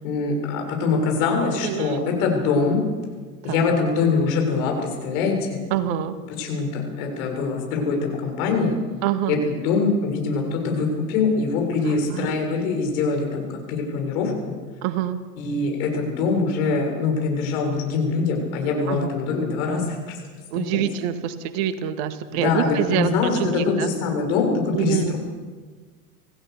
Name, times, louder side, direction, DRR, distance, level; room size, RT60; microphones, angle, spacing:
voice 1, 0.0-2.8 3.4-5.6 6.4-8.8 9.3-14.5 15.4-20.2 20.7-20.8 22.3-25.2, left 4 dB, 60° left, 2 dB, 7.4 m, -23 dB
voice 2, 1.6-2.0 3.4-3.7 5.7-6.1 9.0-9.4 11.8-12.4 14.8-15.2 18.9-19.1 20.5-23.9 24.7-25.1, right 10 dB, 55° right, 9 dB, 2.1 m, -26 dB
27.0 x 16.5 x 6.9 m, 1.4 s
hypercardioid pair, 95°, 48 cm